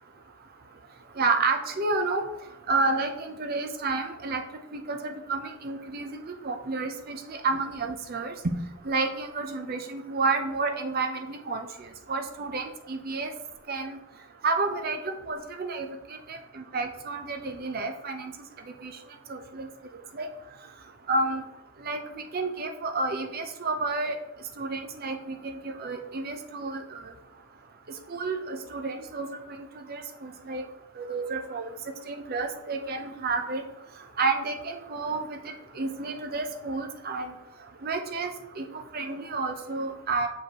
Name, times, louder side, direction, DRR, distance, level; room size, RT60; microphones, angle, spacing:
voice 1, 1.2-2.2 2.7-4.4 4.7-8.3 8.8-11.7 12.1-13.3 13.7-14.0 14.4-15.9 16.3-18.3 18.8-18.9 19.3-19.7 20.1-20.3 21.1-21.4 21.8-22.0 22.3-24.2 24.6-27.0 28.1-30.6 31.0-31.7 32.1-33.6 34.2-35.4 35.8-37.3 37.8-38.3 38.6-38.7 38.9-40.3, right 3 dB, 45° right, 6 dB, 0.6 m, -30 dB
6.4 x 5.1 x 2.9 m, 0.90 s
head